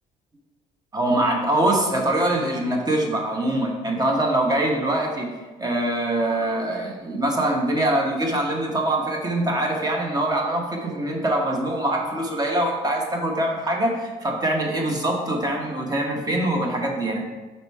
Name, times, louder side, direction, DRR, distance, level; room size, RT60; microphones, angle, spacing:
voice 1, 0.9-5.3 5.6-17.2, right 1 dB, 20° right, 1 dB, 1.1 m, -23 dB
4.9 x 4.3 x 4.7 m, 1.2 s
cardioid pair, 110°, 17 cm